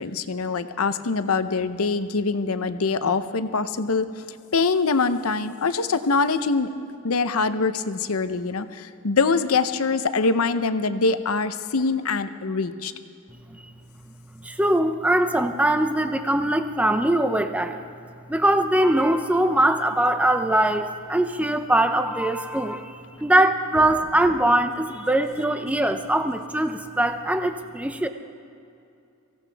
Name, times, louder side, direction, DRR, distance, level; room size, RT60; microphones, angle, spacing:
voice 1, 0.0-4.1 4.5-6.7 7.0-12.9, left 4 dB, 80° left, 11 dB, 0.7 m, -24 dB
voice 2, 14.3-17.8 18.3-28.1, right 1 dB, 5° right, 7 dB, 0.5 m, -22 dB
24.5 x 16.5 x 3.4 m, 2.6 s
head